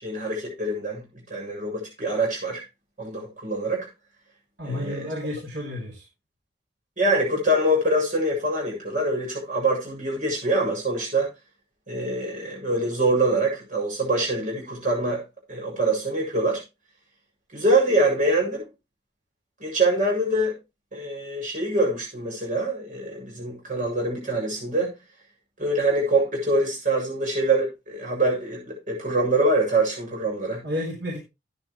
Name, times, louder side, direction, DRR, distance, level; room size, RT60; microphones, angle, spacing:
voice 1, 0.0-2.6 3.0-3.9 4.6-5.1 7.0-11.3 11.9-15.2 15.5-16.6 17.5-18.7 19.6-20.5 20.9-25.0 25.6-30.7, right 1 dB, 45° right, 7.3 m, -24 dB
voice 2, 4.6-6.1 30.6-31.2, left 1 dB, 75° right, 3.7 m, -31 dB
13.5 x 9.7 x 3.1 m
head